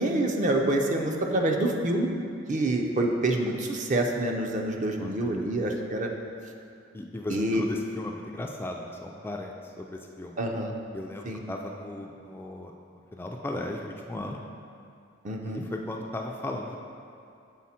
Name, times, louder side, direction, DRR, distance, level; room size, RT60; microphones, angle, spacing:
voice 1, 0.0-2.1 2.5-6.1 7.3-7.6 10.4-10.7 11.3-11.4 15.2-15.7, right 1 dB, 40° right, 2 dB, 0.6 m, -27 dB
voice 2, 5.0-5.5 6.9-10.4 10.9-12.7 13.1-14.4 15.4-16.8, left 1 dB, 10° left, 1 dB, 0.3 m, -36 dB
7.2 x 4.2 x 4.2 m, 2.5 s
head